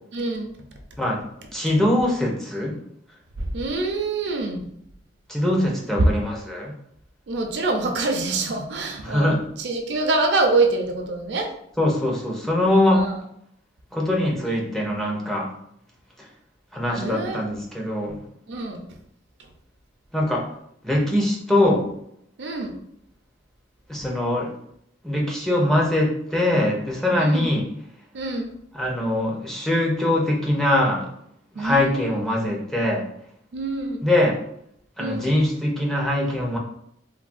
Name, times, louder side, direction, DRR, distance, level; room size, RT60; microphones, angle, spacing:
voice 1, 0.1-0.6 3.4-4.7 6.0-6.1 7.3-11.5 12.9-13.2 16.9-17.4 18.5-18.9 22.4-22.8 24.0-24.1 27.2-27.5 28.1-28.5 31.5-32.2 33.5-34.1 35.0-35.3, right 2 dB, 65° right, 4 dB, 0.4 m, -25 dB
voice 2, 1.5-2.8 5.3-6.8 9.0-9.4 11.8-13.0 13.9-15.5 16.7-18.2 20.1-20.4 20.8-21.8 23.9-24.5 25.0-27.6 28.7-31.1 31.6-33.0 34.0-34.4 35.0-36.6, left 1 dB, ahead, -2 dB, 0.4 m, -22 dB
3.3 x 2.1 x 2.4 m, 0.72 s
head